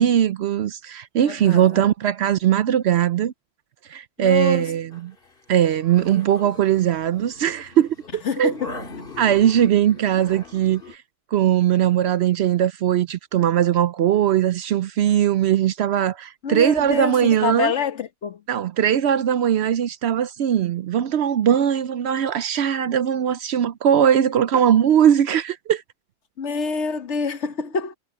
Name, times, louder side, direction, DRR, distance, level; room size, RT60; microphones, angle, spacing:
voice 1, 0.0-3.3 3.9-5.1 5.5-8.5 9.2-11.0 11.3-17.7 18.5-25.8, right 10 dB, 65° right, 0.8 m, -20 dB
voice 2, 1.2-1.8 4.2-4.7 8.2-8.8 16.4-18.4 26.4-27.9, left 5 dB, 65° left, 1.4 m, -27 dB
sound 1, 4.9-11.0, left 3 dB, 45° left, 2.3 m, -41 dB
omnidirectional pair, 1.3 m